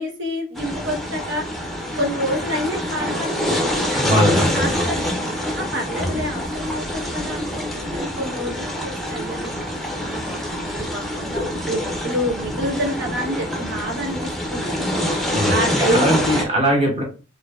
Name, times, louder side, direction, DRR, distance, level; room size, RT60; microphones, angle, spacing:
voice 1, 0.0-1.4 2.0-5.1 5.5-14.7 15.5-16.2, equal, 65° right, 0 dB, 1.0 m, -28 dB
sound 1, 0.5-16.4, equal, ahead, 0.6 m, -25 dB
voice 2, 4.0-5.0 6.0-6.2 15.3-17.0, equal, 30° right, 0 dB, 1.0 m, -21 dB
4.3 x 2.7 x 2.4 m, 0.34 s
head